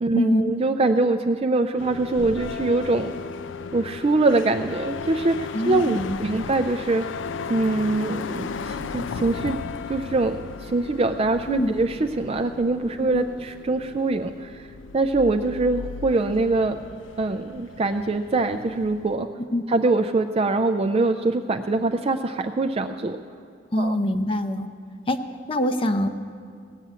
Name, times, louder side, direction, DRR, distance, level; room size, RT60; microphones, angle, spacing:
voice 1, 0.0-3.1 3.7-7.1 7.5-9.6 9.9-10.4 10.6-14.6 14.9-16.8 17.2-19.3 19.7-23.2 23.8-24.0, right 2 dB, 30° right, 7 dB, 0.4 m, -23 dB
sound 1, 1.8-19.2, left 5 dB, 85° left, 0.4 m, -36 dB
voice 2, 5.5-6.2 11.5-11.7 13.1-13.2 19.5-19.6 23.7-24.7 25.1-25.2 25.5-26.1, left 1 dB, 30° left, 8 dB, 0.7 m, -23 dB
17.0 x 6.9 x 9.4 m, 2.4 s
head